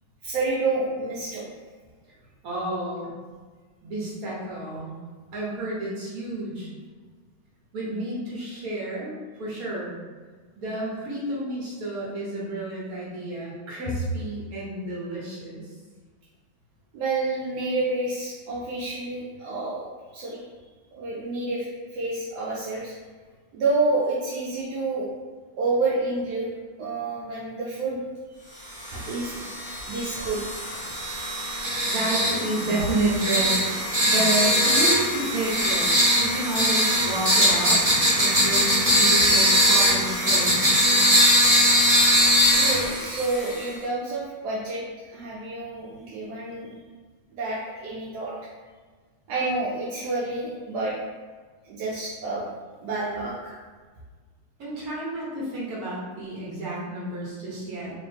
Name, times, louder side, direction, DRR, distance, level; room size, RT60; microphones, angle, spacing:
voice 1, 0.2-1.4 16.9-20.4 20.9-22.9 23.5-25.1 25.6-26.5 26.8-28.0 28.4-28.5 28.9-29.5 29.9-30.4 42.5-46.7 47.3-48.4 49.3-51.0 51.6-52.5 52.8-53.6, right 3 dB, 75° right, -6 dB, 1.0 m, -29 dB
voice 2, 2.4-3.1 3.8-4.9 5.3-6.7 7.7-9.9 10.6-15.7 31.8-35.9 36.2-41.4 54.6-57.9, right 1 dB, 50° right, -6 dB, 1.3 m, -30 dB
sound 1, 28.8-43.7, equal, 35° right, 0.6 m, -21 dB
3.1 x 3.0 x 3.3 m, 1.4 s
omnidirectional pair, 2.3 m